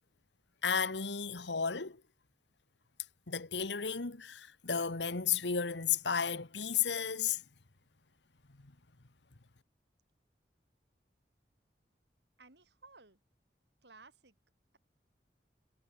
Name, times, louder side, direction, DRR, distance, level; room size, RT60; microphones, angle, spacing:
voice 1, 0.6-2.0 3.3-7.4 8.6-8.7, left 7 dB, 85° left, 1.5 m, -33 dB
voice 2, 12.4-13.2 13.8-14.4, right 3 dB, 75° right, 4.3 m, -57 dB
head